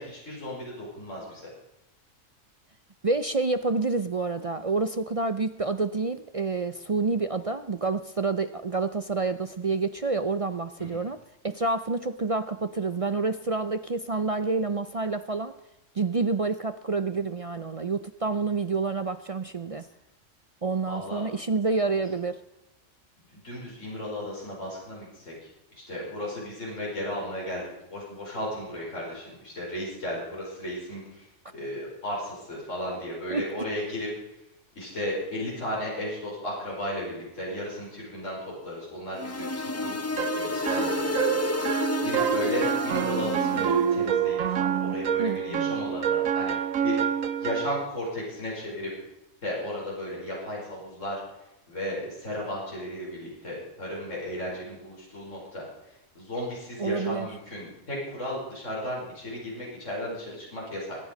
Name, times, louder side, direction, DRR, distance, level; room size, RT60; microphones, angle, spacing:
voice 1, 0.0-1.5 10.8-11.0 20.9-21.2 23.3-31.3 31.5-34.1 34.8-41.1 42.0-46.5 46.8-47.0 47.4-48.9 49.4-51.2 51.7-55.6 56.2-61.0, left 1 dB, 70° left, -4 dB, 5.6 m, -35 dB
voice 2, 3.0-11.2 11.4-15.5 15.9-19.9 20.6-22.4 33.3-33.5 45.2-45.8 56.8-57.3, right 3 dB, 45° right, 10 dB, 0.4 m, -28 dB
sound 1, 39.2-43.9, left 2 dB, 20° left, 0.5 m, -31 dB
sound 2, 40.2-47.8, right 8 dB, 90° right, 1.3 m, -27 dB
23.0 x 9.1 x 5.3 m, 0.93 s
omnidirectional pair, 1.4 m